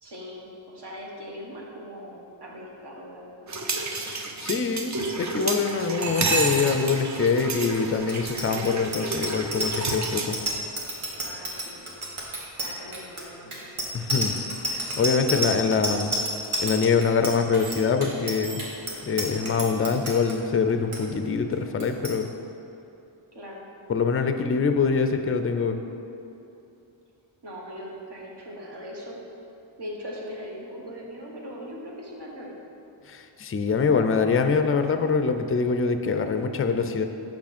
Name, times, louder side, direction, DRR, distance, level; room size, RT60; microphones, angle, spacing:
voice 1, 0.0-3.5 11.1-11.9 12.6-13.6 23.3-23.6 27.4-29.2 29.8-32.6, equal, 55° right, -3 dB, 1.4 m, -40 dB
sound 1, 3.5-10.5, right 3 dB, 35° right, 0.6 m, -30 dB
voice 2, 4.1-10.4 13.9-14.4 14.7-16.1 16.6-18.6 19.1-22.3 23.9-25.8 33.1-37.0, left 5 dB, 30° left, 7 dB, 0.4 m, -24 dB
Bicycle bell, 8.0-20.3 20.7-21.0 21.2-21.5 21.8-22.1, right 1 dB, 80° right, 1.4 m, -30 dB
6.0 x 5.9 x 4.2 m, 2.9 s
wide cardioid pair, 70°, 50 cm